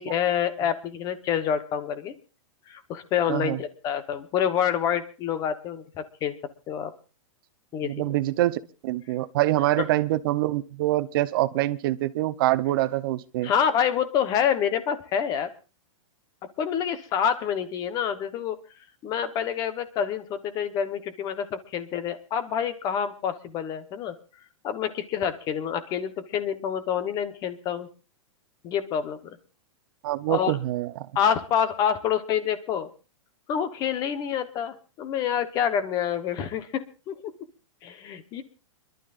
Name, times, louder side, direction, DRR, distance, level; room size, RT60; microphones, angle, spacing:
voice 1, 0.0-2.1 2.7-6.3 6.7-6.9 7.7-8.0 13.4-15.5 16.6-18.6 19.0-24.2 24.6-27.9 28.6-29.4 30.3-30.6 31.1-32.9 33.5-37.2 37.8-38.4, left 8 dB, 25° left, 11 dB, 1.1 m, -27 dB
voice 2, 3.3-3.6 7.8-13.5 30.0-30.9, right 16 dB, 45° right, 10 dB, 0.8 m, -25 dB
27.0 x 12.0 x 2.5 m, 0.32 s
supercardioid pair, 165°, 16 cm